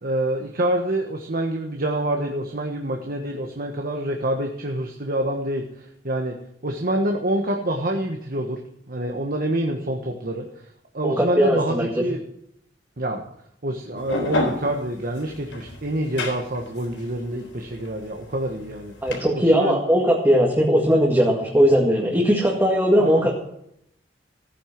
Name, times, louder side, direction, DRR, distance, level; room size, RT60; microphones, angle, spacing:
voice 1, 0.0-6.4 6.6-8.6 8.9-10.5 10.9-12.2 13.0-13.2 13.6-18.9 19.3-19.8 23.0-23.1, right 1 dB, 50° right, 2 dB, 1.4 m, -26 dB
voice 2, 11.0-11.9 19.0-23.3, equal, 15° right, -2 dB, 2.0 m, -19 dB
sound 1, 14.0-19.2, left 2 dB, 80° left, 3.9 m, -29 dB
15.0 x 9.9 x 6.0 m, 0.75 s
head